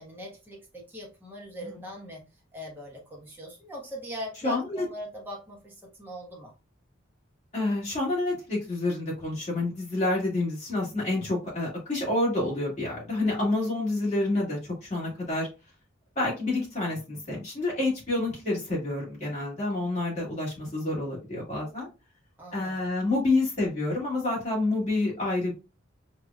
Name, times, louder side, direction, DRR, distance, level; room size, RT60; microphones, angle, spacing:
voice 1, 0.0-2.2 2.5-6.5 22.4-22.9, left 1 dB, 10° right, 1.2 m, -41 dB
voice 2, 4.4-4.9 7.5-15.5 16.2-21.9 22.5-25.5, left 2 dB, 35° left, 2.2 m, -28 dB
4.9 x 2.9 x 2.3 m
head